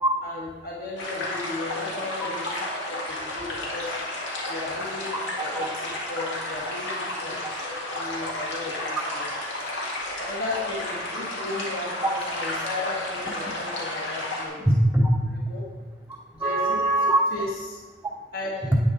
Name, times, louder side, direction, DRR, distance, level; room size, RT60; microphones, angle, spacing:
voice 1, 0.2-2.5 2.9-4.0 4.5-7.3 7.6-9.3 9.6-9.7 10.2-14.6 15.5-15.7 16.3-16.8 17.3-17.8 18.3-18.7, left 2 dB, 50° left, -4 dB, 1.8 m, -35 dB
sound 1, 1.0-14.5, left 1 dB, 80° left, 2.1 m, -32 dB
voice 2, 14.7-15.4 16.4-17.2 18.7-18.8, right 1 dB, 5° right, -3 dB, 0.8 m, -21 dB
9.8 x 9.1 x 3.9 m, 1.3 s
head